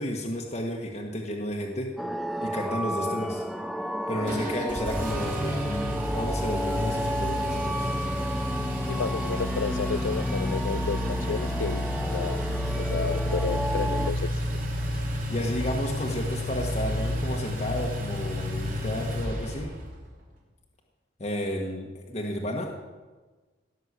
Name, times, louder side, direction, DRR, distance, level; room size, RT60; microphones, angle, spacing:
voice 1, 0.0-1.9 2.4-3.4 4.1-7.9 12.6-12.7 15.3-19.7 21.2-22.7, equal, 35° left, -1 dB, 1.5 m, -32 dB
sound 1, 2.0-14.1, equal, ahead, 0.4 m, -32 dB
Engine, 4.3-20.0, left 1 dB, 45° right, 3.3 m, -30 dB
voice 2, 8.9-11.8 12.1-12.4 12.8-14.6, left 5 dB, 75° left, 15 dB, 0.4 m, -32 dB
17.0 x 6.6 x 8.2 m, 1.3 s
head